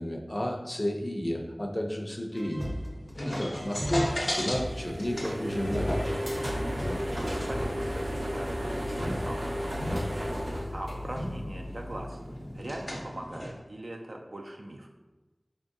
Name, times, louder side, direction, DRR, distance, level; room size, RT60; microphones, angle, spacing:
voice 1, 0.0-2.7 3.2-6.1, equal, 30° left, 2 dB, 0.6 m, -32 dB
sound 1, 2.3-7.6, equal, 25° right, 0.6 m, -36 dB
sound 2, 2.5-13.5, left 1 dB, 70° left, 0.8 m, -36 dB
sound 3, 4.3-11.6, equal, 85° right, 1.0 m, -34 dB
voice 2, 6.5-12.2 12.5-14.9, right 1 dB, 65° right, 1 dB, 0.4 m, -41 dB
4.4 x 3.6 x 2.6 m, 1.1 s
wide cardioid pair, 50°, 0 cm